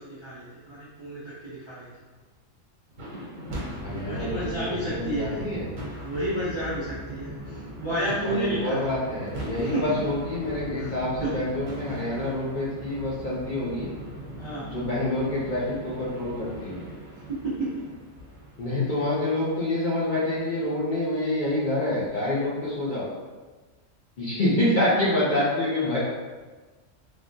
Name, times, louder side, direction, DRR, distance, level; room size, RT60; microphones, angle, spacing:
voice 1, 0.0-1.9 3.9-5.5 6.0-9.0 9.7-9.9 10.8-10.9 11.2-11.3 14.4-14.7 17.3-17.7, right 1 dB, 35° right, -10 dB, 0.4 m, -31 dB
sound 1, 2.9-19.3, right 1 dB, 75° right, 1.2 m, -39 dB
voice 2, 3.8-5.6 8.2-13.9 14.6-16.8 18.6-23.0 24.2-26.0, left 1 dB, 45° left, -8 dB, 0.7 m, -27 dB
3.4 x 2.2 x 2.6 m, 1.3 s
omnidirectional pair, 1.3 m